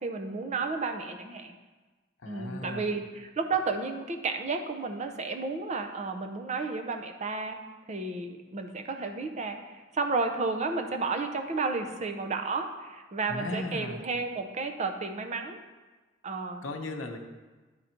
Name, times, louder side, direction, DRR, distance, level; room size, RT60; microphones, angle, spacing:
voice 1, 0.0-1.6 2.3-7.6 7.9-15.6 16.2-16.6, right 3 dB, 35° right, 5 dB, 0.6 m, -32 dB
voice 2, 2.2-2.8 13.3-14.0 16.6-17.2, left 2 dB, 80° left, 3 dB, 0.7 m, -36 dB
10.5 x 3.9 x 4.4 m, 1.3 s
head